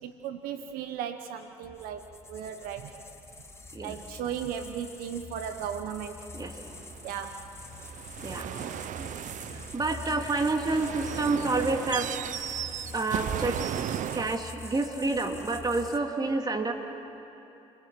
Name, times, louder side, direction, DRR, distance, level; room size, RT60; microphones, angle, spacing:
voice 1, 0.0-2.9 3.8-6.2 7.0-7.4, right 9 dB, 80° right, 8 dB, 1.1 m, -36 dB
sound 1, 1.6-16.0, left 3 dB, 20° left, 2.2 m, -45 dB
voice 2, 6.3-6.6 8.2-8.5 9.0-9.1 9.7-12.1 12.9-13.6 14.1-16.7, right 3 dB, 25° right, 3 dB, 2.9 m, -28 dB
sound 2, 6.6-14.4, right 10 dB, 55° right, 0.7 m, -36 dB
29.5 x 22.0 x 7.7 m, 2.8 s
supercardioid pair, 65°, 15 cm